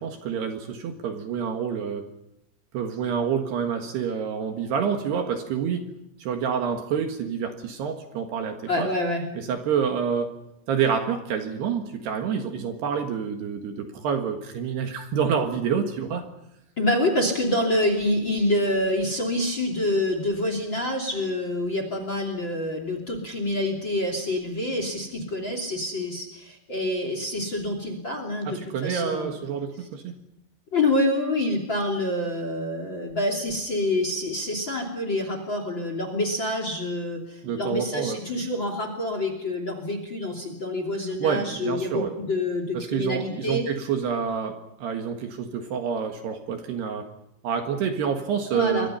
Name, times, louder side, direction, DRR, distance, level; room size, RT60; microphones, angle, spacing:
voice 1, 0.0-2.1 2.7-5.9 6.2-8.9 9.3-10.3 10.7-16.3 28.4-30.2 37.4-38.2 41.2-42.1 42.7-47.1 47.4-48.9, right 7 dB, 65° right, 5 dB, 3.3 m, -28 dB
voice 2, 8.7-9.2 16.8-29.4 30.7-43.6 48.5-48.9, left 1 dB, 30° left, 6 dB, 2.7 m, -27 dB
28.5 x 24.0 x 5.7 m, 0.86 s
omnidirectional pair, 5.9 m